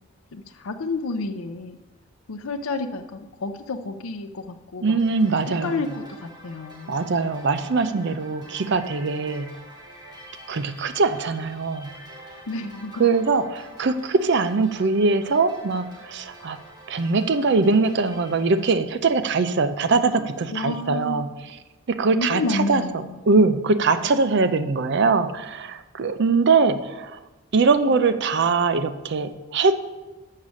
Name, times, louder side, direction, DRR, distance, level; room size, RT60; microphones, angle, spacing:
voice 1, 0.3-1.8 2.3-5.0 5.6-6.9 12.5-13.1 20.1-21.3 22.1-23.1, left 3 dB, 80° left, 8 dB, 0.5 m, -30 dB
voice 2, 4.8-5.8 6.9-9.5 10.5-11.9 13.0-16.6 16.9-21.3 21.9-27.2 27.5-29.7, right 4 dB, 55° right, 11 dB, 0.5 m, -22 dB
sound 1, 5.0-18.7, right 1 dB, 20° right, 1.5 m, -46 dB
7.1 x 6.6 x 6.2 m, 1.1 s
head